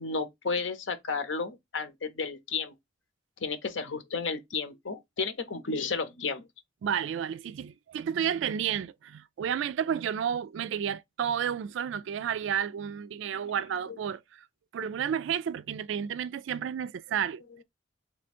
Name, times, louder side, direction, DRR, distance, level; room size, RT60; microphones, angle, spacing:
voice 1, 0.0-2.7 3.4-6.4 13.5-13.6, left 4 dB, 80° left, 0.8 m, -32 dB
voice 2, 6.8-14.5 14.7-17.6, right 8 dB, 80° right, 0.3 m, -31 dB
3.4 x 2.6 x 4.2 m
head